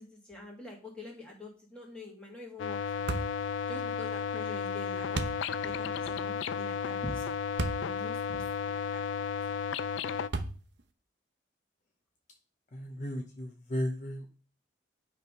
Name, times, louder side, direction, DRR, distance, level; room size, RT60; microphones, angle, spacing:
voice 1, 0.0-3.2 3.7-5.2 5.6-7.4 7.8-9.0 9.5-9.6, left 1 dB, 5° left, -3 dB, 2.0 m, -45 dB
sound 1, 2.6-10.3, left 6 dB, 85° left, 0.4 m, -33 dB
sound 2, 3.1-3.4 5.1-5.4 7.6-7.9 8.5-8.6 10.3-10.8, right 3 dB, 70° right, 0.7 m, -33 dB
voice 2, 12.7-14.2, equal, 40° left, 3 dB, 0.7 m, -35 dB
9.1 x 3.4 x 5.4 m, 0.39 s
head